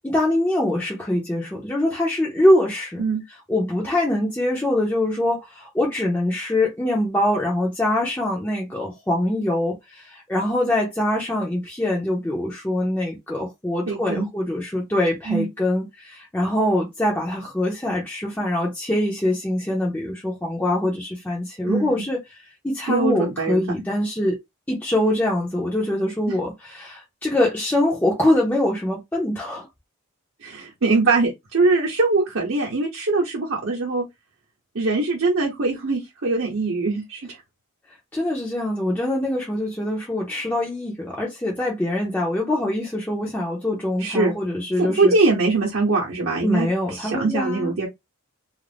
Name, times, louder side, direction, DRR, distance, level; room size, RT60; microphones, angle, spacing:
voice 1, 0.0-3.0 3.5-24.4 24.7-29.7 38.1-45.1 46.4-47.7, left 1 dB, 10° left, 0.5 m, -23 dB
voice 2, 13.9-14.3 15.3-15.5 21.7-22.0 22.9-23.6 30.4-34.1 34.7-37.2 44.0-44.3 44.8-47.9, right 3 dB, 60° right, 0.8 m, -22 dB
2.4 x 2.0 x 3.3 m
head